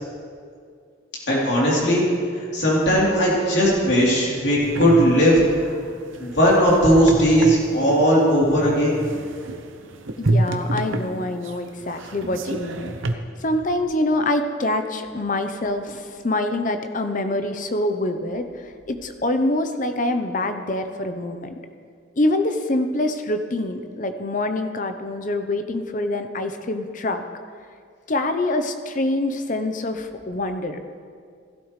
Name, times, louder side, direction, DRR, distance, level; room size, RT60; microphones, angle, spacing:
voice 1, 1.3-2.0 2.3-5.7 6.1-8.9, equal, 60° left, -6 dB, 3.4 m, -18 dB
sound 1, 4.6-13.1, right 2 dB, 85° right, 0.8 m, -29 dB
voice 2, 10.2-12.9 13.4-21.5 22.2-27.2 28.1-30.8, left 1 dB, 40° left, 8 dB, 0.7 m, -25 dB
16.5 x 12.0 x 3.2 m, 2.2 s
head